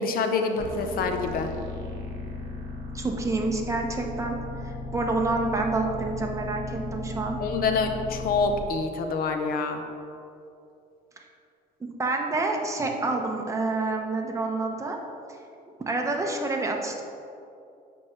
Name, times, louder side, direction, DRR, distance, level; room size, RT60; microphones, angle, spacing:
voice 1, 0.0-1.5 7.4-9.8, left 4 dB, 60° left, 6 dB, 0.8 m, -26 dB
sound 1, 0.6-8.6, left 2 dB, 60° right, 1.2 m, -36 dB
voice 2, 2.9-7.4 11.8-15.0 15.9-17.0, right 3 dB, 20° right, 1 dB, 0.9 m, -28 dB
7.7 x 6.1 x 3.2 m, 2.6 s
cardioid pair, 110°, 17 cm